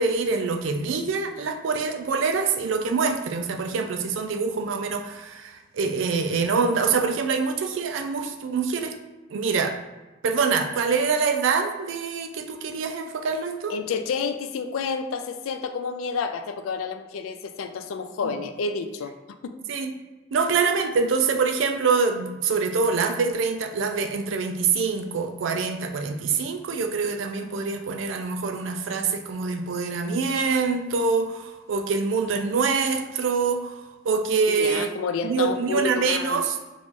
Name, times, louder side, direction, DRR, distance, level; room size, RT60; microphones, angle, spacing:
voice 1, 0.0-9.0 9.3-9.8 10.2-13.7 18.2-18.4 19.7-19.9 20.3-34.9 35.2-36.6, right 5 dB, 70° right, 5 dB, 0.4 m, -25 dB
voice 2, 13.7-19.6 20.4-20.5 34.5-36.4, left 5 dB, 85° left, 8 dB, 0.3 m, -30 dB
3.0 x 2.5 x 3.6 m, 1.2 s
head